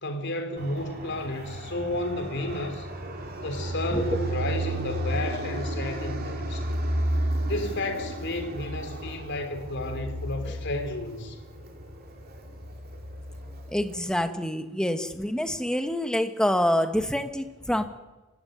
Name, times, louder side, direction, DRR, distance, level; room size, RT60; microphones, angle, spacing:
voice 1, 0.0-2.9 3.4-6.7 7.4-11.4, left 2 dB, 55° left, 6 dB, 3.9 m, -32 dB
Fixed-wing aircraft airplane, 0.6-14.1, right 1 dB, 45° right, 3.1 m, -33 dB
voice 2, 13.7-17.8, left 1 dB, 5° left, 7 dB, 1.5 m, -26 dB
25.0 x 16.0 x 9.5 m, 1.1 s
head